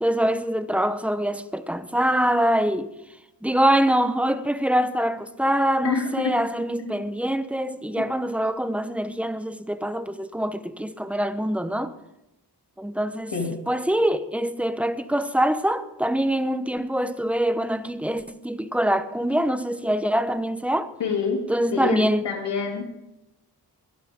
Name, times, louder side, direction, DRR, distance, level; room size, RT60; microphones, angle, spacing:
voice 1, 0.0-2.9 3.4-11.9 12.8-13.3 13.7-20.9 21.5-22.2, right 1 dB, 5° right, 0.9 m, -24 dB
voice 2, 5.8-6.3 6.8-7.0 13.3-13.5 21.0-21.4 21.7-22.9, left 5 dB, 90° left, 2.9 m, -26 dB
22.0 x 12.0 x 3.7 m
wide cardioid pair, 85°, 41 cm